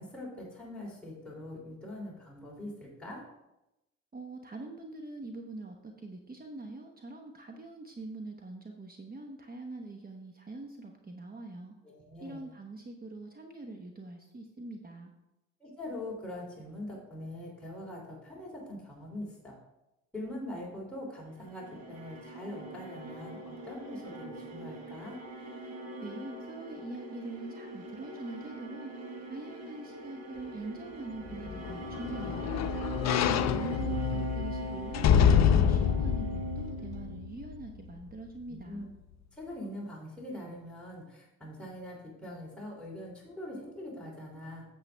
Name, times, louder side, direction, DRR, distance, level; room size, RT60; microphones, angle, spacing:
voice 1, 0.0-3.2 11.8-12.4 15.6-19.6 20.1-25.2 38.5-38.9 39.4-44.6, left 1 dB, 5° left, -4 dB, 2.8 m, -43 dB
voice 2, 4.1-11.8 12.2-15.1 26.0-28.9 29.3-32.5 33.0-38.9, right 2 dB, 30° right, 3 dB, 1.0 m, -44 dB
sound 1, 21.3-37.6, right 3 dB, 55° right, 1.7 m, -41 dB
sound 2, 31.3-37.7 38.1-38.2, left 8 dB, 60° left, 0.6 m, -27 dB
9.0 x 7.3 x 3.3 m, 0.91 s
cardioid pair, 90°, 30 cm